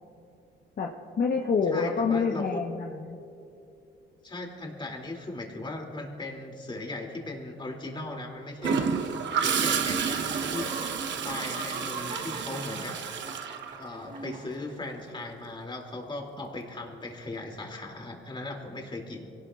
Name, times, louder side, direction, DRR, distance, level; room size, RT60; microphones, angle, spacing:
voice 1, 1.2-3.2, left 5 dB, 50° left, 0 dB, 1.1 m, -27 dB
voice 2, 1.7-2.6 4.2-10.7 11.2-13.1 13.8-19.3, left 2 dB, 25° left, 1 dB, 2.8 m, -38 dB
Gurgling / Toilet flush, 8.6-14.4 16.4-16.6, right 6 dB, 65° right, 1.0 m, -30 dB
sound 1, 8.7-9.8 10.1-15.1, right 2 dB, 40° right, 1.8 m, -42 dB
23.5 x 18.0 x 2.5 m, 2.7 s
cardioid pair, 90°, 20 cm